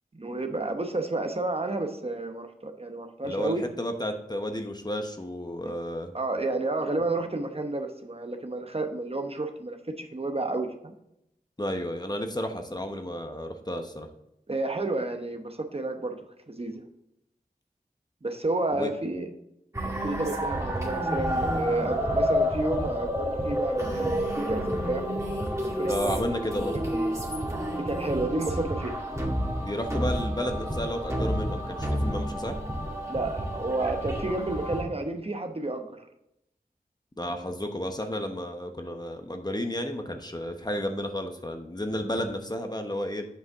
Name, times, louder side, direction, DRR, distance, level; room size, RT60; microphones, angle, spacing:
voice 1, 0.1-3.6 5.6-5.7 6.1-10.9 14.5-16.2 16.5-16.8 18.2-19.3 19.8-25.1 25.6-26.4 26.7-26.8 27.8-29.0 33.1-36.1, right 2 dB, 40° right, 6 dB, 0.9 m, -31 dB
voice 2, 3.2-6.1 11.6-14.1 18.7-18.9 25.9-26.8 29.6-32.6 37.2-43.3, equal, 25° left, 5 dB, 1.0 m, -32 dB
sound 1, 19.7-34.8, equal, 20° right, 2.1 m, -29 dB
8.0 x 5.5 x 3.6 m, 0.81 s
wide cardioid pair, 50°, 16 cm